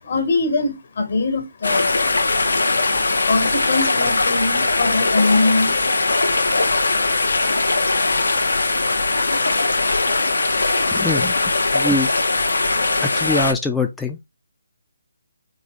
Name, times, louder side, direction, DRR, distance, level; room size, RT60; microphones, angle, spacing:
voice 1, 0.0-2.0 3.2-5.7, left 3 dB, 55° left, 1.4 m, -22 dB
sound 1, 1.6-13.5, left 3 dB, 70° left, 0.7 m, -20 dB
voice 2, 10.9-11.4 11.7-12.1 13.0-14.2, left 2 dB, 5° left, 0.3 m, -23 dB
3.8 x 3.1 x 3.0 m
figure-of-eight pair, 145°, 0 cm